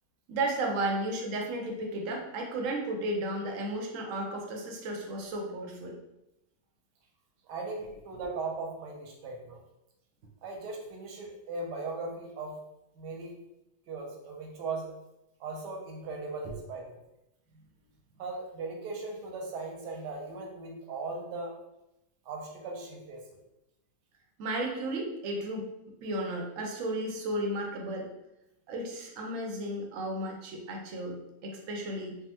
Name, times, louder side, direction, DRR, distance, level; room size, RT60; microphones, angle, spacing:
voice 1, 0.3-5.9 8.2-8.3 24.4-25.7 26.0-28.1 28.7-31.2 31.4-32.2, right 1 dB, 65° right, 1 dB, 0.8 m, -33 dB
voice 2, 7.5-9.6 10.4-12.6 12.9-13.3 13.9-14.9 15.4-17.0 18.2-21.5 22.2-23.2, right 3 dB, 90° right, 1 dB, 1.3 m, -38 dB
3.6 x 2.2 x 2.8 m, 0.87 s
omnidirectional pair, 1.8 m